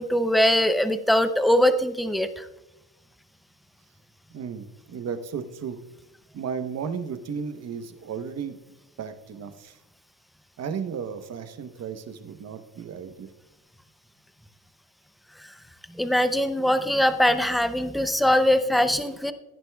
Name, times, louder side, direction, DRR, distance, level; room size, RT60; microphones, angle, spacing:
voice 1, 0.0-2.5 16.0-19.3, left 1 dB, ahead, 11 dB, 0.4 m, -22 dB
voice 2, 4.3-5.8 6.3-8.6 9.0-9.8 10.6-13.3, right 6 dB, 40° right, 9 dB, 1.0 m, -34 dB
16.5 x 9.6 x 2.3 m, 1.0 s
cardioid pair, 120°, 38 cm